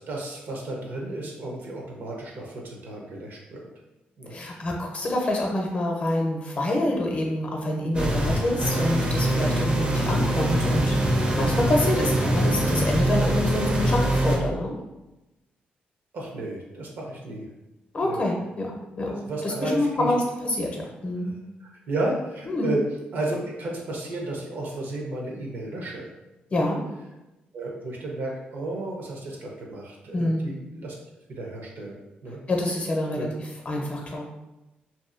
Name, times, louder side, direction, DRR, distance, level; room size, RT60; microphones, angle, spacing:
voice 1, 0.0-3.7 4.2-4.4 11.8-12.0 16.1-17.5 18.0-18.2 19.0-20.1 21.2-21.3 21.9-22.8 23.1-26.1 26.5-26.7 27.5-30.9 31.3-32.4 33.1-33.3, right 2 dB, 65° right, -1 dB, 0.7 m, -33 dB
voice 2, 4.3-14.8 17.9-21.3 22.5-22.7 26.5-26.8 30.1-30.5 32.5-34.3, left 1 dB, 40° left, 0 dB, 0.6 m, -27 dB
sound 1, 7.9-14.4, right 1 dB, 30° right, 0.5 m, -23 dB
2.6 x 2.4 x 2.4 m, 1.0 s
cardioid pair, 85°, 4 cm